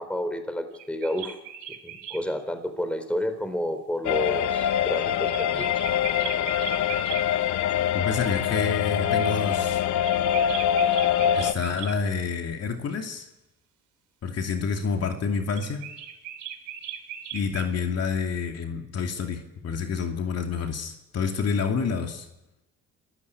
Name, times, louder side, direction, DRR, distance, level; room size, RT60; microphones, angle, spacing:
voice 1, 0.0-1.4 1.8-5.7, equal, 5° left, 8 dB, 3.8 m, -30 dB
sound 1, 0.7-2.2 5.3-7.2 10.0-12.0 15.5-17.7, right 10 dB, 90° right, 3.2 m, -38 dB
sound 2, 4.0-11.5, left 9 dB, 70° left, 1.1 m, -24 dB
voice 2, 7.9-9.9 11.3-13.3 14.2-15.9 17.3-22.3, left 5 dB, 55° left, 4 dB, 2.7 m, -28 dB
27.5 x 15.5 x 8.4 m, 0.90 s
cardioid pair, 90°, 30 cm